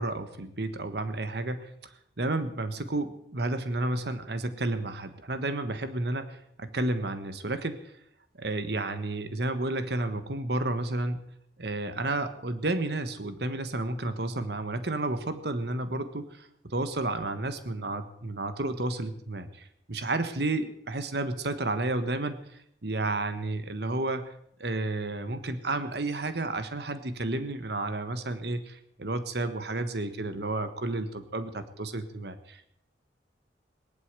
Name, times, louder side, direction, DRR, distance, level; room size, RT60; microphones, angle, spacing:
voice 1, 0.0-1.7 2.2-7.9 8.4-11.3 11.6-22.4 22.8-24.3 24.6-32.7, right 2 dB, 60° right, 10 dB, 1.3 m, -31 dB
18.0 x 11.5 x 6.8 m, 0.72 s
head